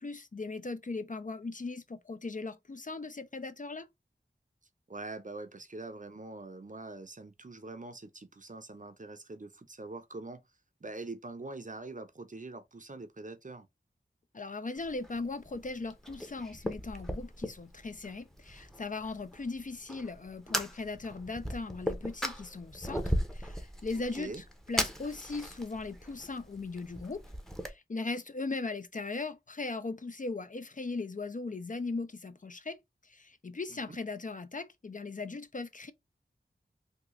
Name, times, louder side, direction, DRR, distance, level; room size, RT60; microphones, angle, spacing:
voice 1, 0.0-3.9 14.3-24.3 24.7-27.2 27.6-35.9, left 3 dB, 40° left, 0.4 m, -38 dB
voice 2, 4.9-10.4 10.8-13.7 23.9-24.4 33.7-34.0, right 3 dB, 40° right, 0.6 m, -44 dB
Fire, 14.8-27.7, equal, ahead, 0.7 m, -38 dB
3.6 x 2.3 x 3.0 m
wide cardioid pair, 50°, 19 cm